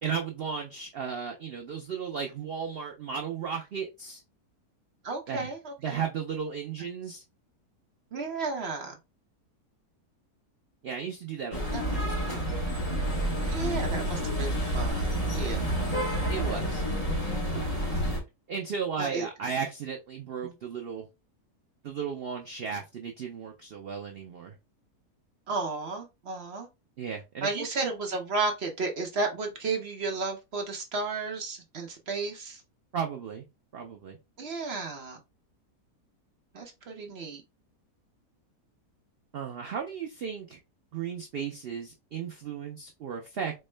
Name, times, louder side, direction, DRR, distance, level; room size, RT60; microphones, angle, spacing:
voice 1, 0.0-4.2 5.3-5.5 5.8-7.2 10.8-12.4 16.3-16.8 18.5-21.1 21.8-24.6 27.0-27.9 32.9-33.4 33.7-34.2 39.3-40.6 40.9-43.5, right 6 dB, 85° right, 0.5 m, -35 dB
voice 2, 5.0-6.0 8.1-8.9 11.7-12.0 13.5-15.8 19.0-19.3 20.4-20.5 25.5-26.7 27.4-32.6 34.4-35.2 36.5-37.4, right 3 dB, 55° right, 0.8 m, -33 dB
sound 1, 11.5-18.2, equal, 30° left, 0.9 m, -29 dB
4.4 x 2.1 x 3.2 m
omnidirectional pair, 1.7 m